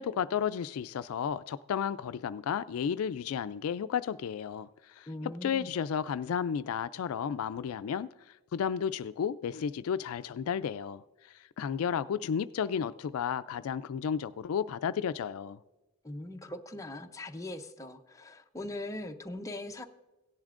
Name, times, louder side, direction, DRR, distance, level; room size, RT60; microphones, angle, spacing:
voice 1, 0.0-4.7 5.0-5.1 5.4-8.1 8.5-11.0 11.6-15.6, left 7 dB, 70° left, 0.3 m, -32 dB
voice 2, 5.1-5.7 16.0-19.9, left 1 dB, 15° left, 0.6 m, -41 dB
17.0 x 10.5 x 2.5 m
head